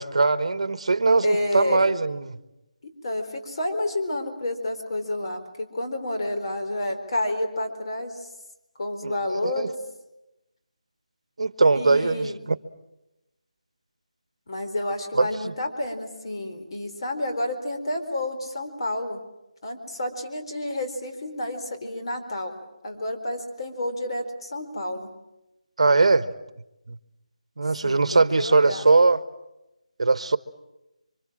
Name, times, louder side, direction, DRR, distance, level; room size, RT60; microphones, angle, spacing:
voice 1, 0.0-2.4 9.0-9.2 9.4-9.7 11.4-12.6 15.1-15.5 25.8-26.3 26.9-27.0 27.6-29.2 30.0-30.4, right 3 dB, 55° right, 13 dB, 1.4 m, -21 dB
voice 2, 1.2-1.9 3.0-8.3 8.8-9.8 11.7-12.4 14.5-19.2 19.6-22.6 22.8-25.1 27.8-28.9, left 1 dB, 40° left, 6 dB, 4.5 m, -30 dB
27.5 x 25.0 x 7.6 m, 0.94 s
figure-of-eight pair, 175°, 4 cm